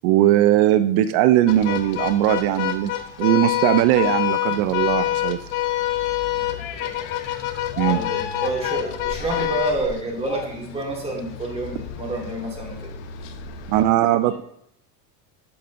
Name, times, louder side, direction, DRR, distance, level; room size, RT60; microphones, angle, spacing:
voice 1, 0.0-2.9 3.2-5.4 7.8-8.0 13.7-14.4, right 13 dB, 75° right, 10 dB, 0.5 m, -19 dB
sound 1, 1.5-13.8, left 12 dB, 75° left, 0.9 m, -27 dB
voice 2, 6.3-7.1 7.8-12.9, right 2 dB, 15° right, -1 dB, 1.7 m, -29 dB
8.5 x 5.9 x 2.6 m, 0.73 s
cardioid pair, 130°, 37 cm